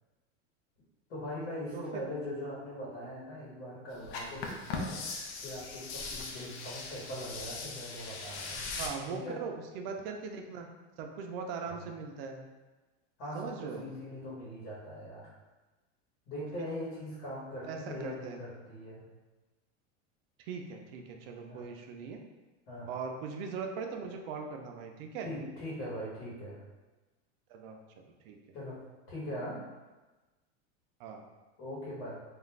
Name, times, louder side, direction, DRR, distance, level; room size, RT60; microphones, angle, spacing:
voice 1, 1.1-5.1 5.4-8.7 9.1-9.4 11.7-11.9 13.2-15.3 16.3-19.0 21.5-21.7 22.7-22.9 25.2-26.6 28.5-28.8 29.1-29.6 31.6-32.2, left 1 dB, 80° left, -7 dB, 1.2 m, -41 dB
sound 1, 4.0-8.9, left 4 dB, 65° left, 0.5 m, -39 dB
voice 2, 8.8-10.7 11.0-12.4 13.3-13.8 16.4-16.7 17.6-18.4 20.4-22.2 22.9-25.3 27.5-28.4 31.0-31.2, right 5 dB, 55° right, 3 dB, 0.4 m, -40 dB
2.4 x 2.3 x 3.2 m, 1.2 s
supercardioid pair, 165°, 36 cm